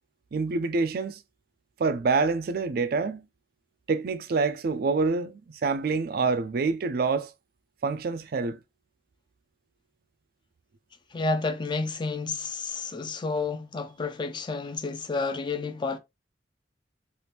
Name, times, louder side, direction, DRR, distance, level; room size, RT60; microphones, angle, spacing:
voice 1, 0.3-1.2 1.8-3.2 3.9-7.3 7.8-8.6, right 4 dB, 55° right, 0.4 m, -26 dB
voice 2, 11.1-16.0, left 3 dB, 25° left, 0.4 m, -30 dB
3.4 x 2.5 x 2.8 m
head